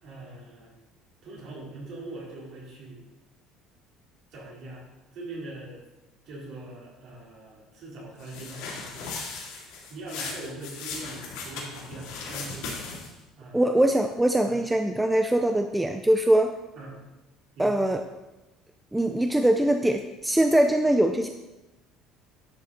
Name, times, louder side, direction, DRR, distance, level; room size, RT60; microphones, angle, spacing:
voice 1, 0.0-0.7 1.2-3.0 4.3-4.8 5.1-5.8 6.3-9.1 9.9-12.8 13.4-13.8 14.4-14.6 16.8-17.0 17.6-17.9, right 2 dB, 50° right, -5 dB, 3.7 m, -42 dB
sound 1, 8.2-13.2, left 4 dB, 90° left, 3.0 m, -37 dB
voice 2, 13.5-16.5 17.6-18.0 18.9-21.3, right 1 dB, 5° right, 5 dB, 0.4 m, -22 dB
11.0 x 6.2 x 4.1 m, 1.0 s
cardioid pair, 165°, 0 cm